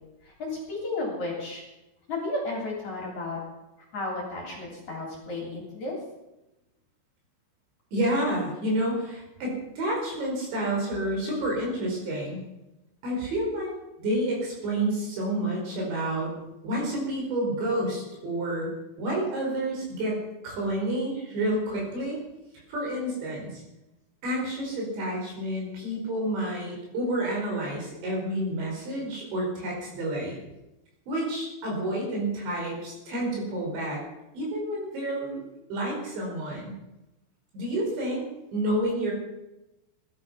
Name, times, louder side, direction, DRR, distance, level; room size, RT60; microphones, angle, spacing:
voice 1, 0.2-1.6 2.1-3.4 3.9-6.0, left 2 dB, 40° left, -2 dB, 4.1 m, -33 dB
voice 2, 7.9-12.4 13.0-13.7 14.0-16.3 16.6-18.7 19.0-22.2 22.7-23.6 24.2-30.4 31.1-34.0 34.3-35.4 35.7-36.8 37.5-38.2 38.5-39.1, right 1 dB, 60° right, -1 dB, 7.1 m, -29 dB
19.0 x 13.0 x 5.8 m, 0.97 s
omnidirectional pair, 5.9 m